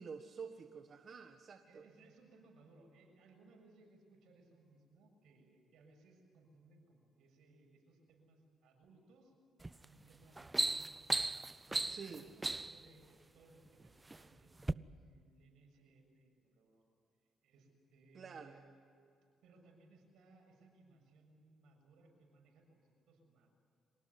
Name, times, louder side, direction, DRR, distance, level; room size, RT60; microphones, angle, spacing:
voice 1, 0.0-1.8 11.9-12.2 18.1-18.6, right 6 dB, 50° right, 5 dB, 1.5 m, -49 dB
voice 2, 1.6-9.3 9.8-11.3 11.7-16.8 17.4-18.7 19.4-23.5, right 3 dB, 80° right, 2 dB, 6.9 m, -64 dB
sound 1, 9.6-9.9 10.2-12.9 13.7-14.2 14.6-14.7, right 2 dB, 20° right, 0.6 m, -36 dB
26.0 x 18.0 x 9.6 m, 2.5 s
cardioid pair, 90°, 0 cm